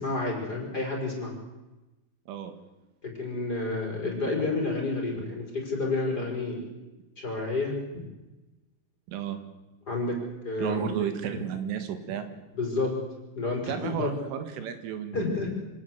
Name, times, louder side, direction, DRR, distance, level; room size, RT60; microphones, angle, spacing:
voice 1, 0.0-1.3 3.0-6.7 7.2-8.1 9.9-10.2 10.4-11.1 12.5-12.9 13.4-14.2 15.1-15.5, left 3 dB, 20° left, 1 dB, 5.6 m, -30 dB
voice 2, 9.1-9.4 10.6-12.3 13.7-15.2, right 9 dB, 80° right, 9 dB, 4.5 m, -33 dB
26.0 x 18.5 x 8.0 m, 1.1 s
omnidirectional pair, 5.6 m